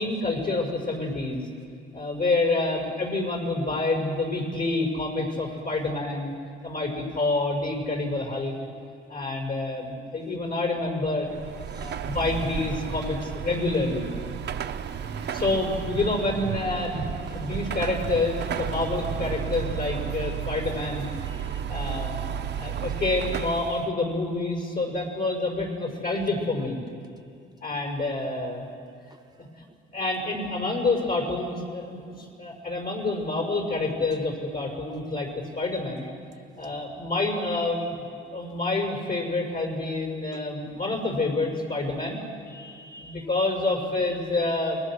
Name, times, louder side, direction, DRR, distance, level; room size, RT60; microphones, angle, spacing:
voice 1, 0.0-1.4 1.9-6.3 6.6-8.5 9.1-11.3 11.7-14.1 15.0-21.1 21.7-22.2 22.6-26.8 27.6-28.6 29.6-29.7 29.9-35.3 35.6-36.1 36.6-37.9 38.2-42.2 43.0-44.8, left 2 dB, 50° left, 1 dB, 6.2 m, -28 dB
Car passing by / Traffic noise roadway noise / Engine, 11.3-23.9, right 8 dB, 60° right, 1.0 m, -33 dB
voice 2, 21.2-22.0 42.5-43.3, equal, 20° right, 7 dB, 1.1 m, -49 dB
28.0 x 21.0 x 6.5 m, 2.4 s
cardioid pair, 90°, 20 cm